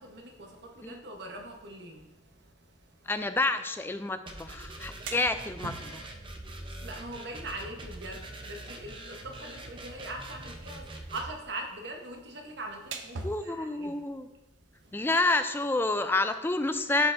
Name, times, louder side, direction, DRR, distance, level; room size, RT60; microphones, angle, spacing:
voice 1, 0.0-3.1 6.5-14.0 14.7-15.0, right 2 dB, 60° right, 1.0 m, -42 dB
voice 2, 3.1-6.0 13.2-14.3 14.9-17.1, left 2 dB, 10° left, 0.3 m, -29 dB
sound 1, 4.3-11.3, right 1 dB, 25° right, 0.6 m, -43 dB
sound 2, 4.7-16.0, right 3 dB, 80° right, 0.6 m, -48 dB
11.5 x 4.4 x 2.5 m
head